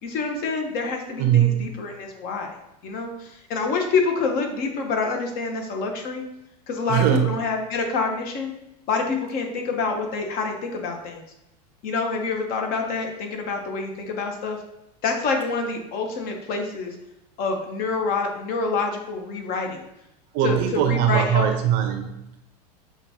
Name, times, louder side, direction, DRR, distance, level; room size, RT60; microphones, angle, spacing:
voice 1, 0.0-2.6 2.8-6.2 6.7-8.5 8.9-11.2 11.8-14.6 15.0-16.9 17.4-19.8 20.4-21.5, left 4 dB, 45° left, 3 dB, 0.9 m, -27 dB
voice 2, 1.2-1.7 6.9-7.4 20.3-22.4, right 10 dB, 50° right, 5 dB, 0.6 m, -21 dB
5.9 x 2.3 x 2.8 m, 0.82 s
supercardioid pair, 115°, 20 cm